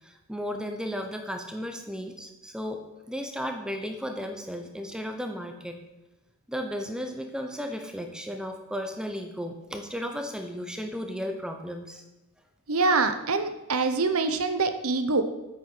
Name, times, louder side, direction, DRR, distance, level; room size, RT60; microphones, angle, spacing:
voice 1, 0.0-5.8 6.5-12.0, equal, 5° right, 5 dB, 0.9 m, -34 dB
voice 2, 12.7-15.2, right 3 dB, 80° right, 9 dB, 1.0 m, -25 dB
8.6 x 8.3 x 6.1 m, 1.0 s
head